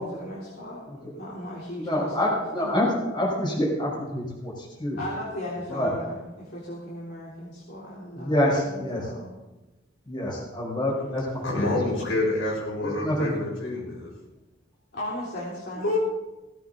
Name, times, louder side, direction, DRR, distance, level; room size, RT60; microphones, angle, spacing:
voice 1, 0.1-2.8 5.0-9.4 14.9-15.9, left 1 dB, 55° left, -6 dB, 3.5 m, -37 dB
voice 2, 1.8-4.5 4.8-5.0 5.7-5.9 8.1-9.0 10.1-11.7 12.8-13.4, left 1 dB, 25° left, -3 dB, 4.7 m, -26 dB
voice 3, 11.4-14.1 15.7-16.0, left 2 dB, 90° left, -4 dB, 6.5 m, -27 dB
17.5 x 16.0 x 3.9 m, 1.1 s
head